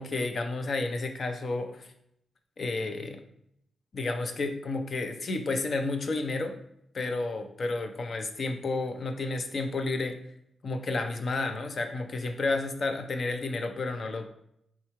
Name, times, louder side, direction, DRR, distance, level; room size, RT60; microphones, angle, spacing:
voice 1, 0.0-1.9 2.6-3.2 3.9-6.6 6.9-10.2 10.6-14.3, left 3 dB, 45° left, 6 dB, 0.5 m, -31 dB
4.4 x 3.6 x 2.9 m, 0.74 s
wide cardioid pair, 140°, 0 cm